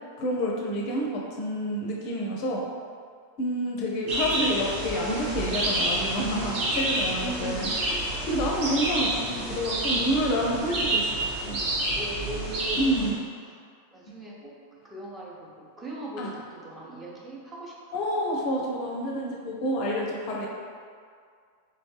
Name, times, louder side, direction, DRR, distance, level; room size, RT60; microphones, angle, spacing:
voice 1, 0.2-2.6 3.4-7.7 8.3-11.1 11.4-11.6 12.8-13.2 16.2-16.3 17.9-20.5, equal, 45° left, -2 dB, 0.5 m, -28 dB
sound 1, 4.1-13.1, right 1 dB, 40° right, 1.0 m, -29 dB
voice 2, 7.2-7.7 11.9-12.9 13.4-13.6 13.9-14.6 14.8-18.0, right 2 dB, 15° right, -5 dB, 0.8 m, -39 dB
3.6 x 3.1 x 3.2 m, 2.1 s
figure-of-eight pair, 90°, 0 cm